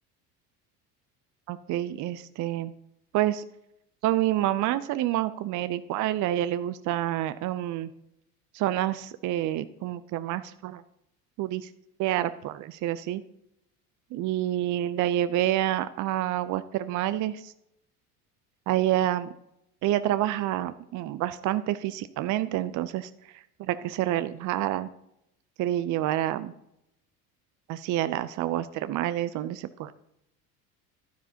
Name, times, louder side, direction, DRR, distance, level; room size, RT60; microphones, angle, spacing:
voice 1, 1.5-2.7 3.1-3.4 4.0-7.9 8.5-10.8 11.4-11.7 12.0-13.2 14.1-17.5 18.7-19.3 19.8-24.9 25.6-26.5 27.7-29.9, right 13 dB, 40° right, 13 dB, 0.5 m, -28 dB
12.0 x 10.0 x 2.8 m, 0.81 s
hypercardioid pair, 70°, 46 cm